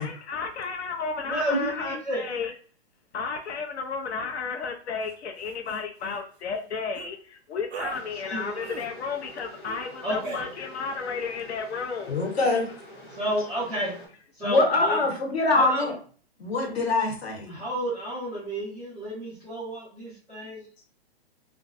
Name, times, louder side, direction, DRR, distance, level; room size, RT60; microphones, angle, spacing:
voice 1, 0.0-2.5 3.1-12.3, left 5 dB, 90° left, 4 dB, 0.6 m, -33 dB
voice 2, 1.3-2.2 8.2-8.6 10.0-10.4 13.1-14.0 14.4-15.0 15.5-15.9 17.5-20.6, right 1 dB, ahead, -10 dB, 0.5 m, -31 dB
sound 1, 5.0-5.2 5.5-5.8 6.9-7.1 7.7-8.0 8.6-8.9 9.6-9.9 10.2-10.4, right 7 dB, 80° right, 0.5 m, -39 dB
sound 2, 7.9-14.1, equal, 25° left, 0.7 m, -46 dB
voice 3, 12.1-12.7 14.4-15.9 16.4-17.6, left 3 dB, 70° left, 2 dB, 1.0 m, -24 dB
2.3 x 2.2 x 2.4 m, 0.43 s
hypercardioid pair, 165°, 32 cm